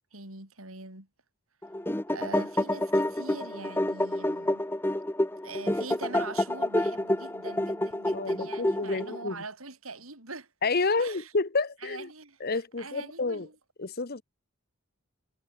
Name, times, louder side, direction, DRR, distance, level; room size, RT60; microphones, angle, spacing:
voice 1, 0.1-1.1 2.1-4.6 5.4-10.5 10.8-11.3 11.8-13.6, right 3 dB, 80° right, 7.2 m, -43 dB
sound 1, 1.6-9.2, left 1 dB, 10° left, 0.9 m, -28 dB
voice 2, 8.1-9.4 10.6-12.1 12.4-13.5 13.8-14.2, left 3 dB, 45° left, 1.0 m, -29 dB
head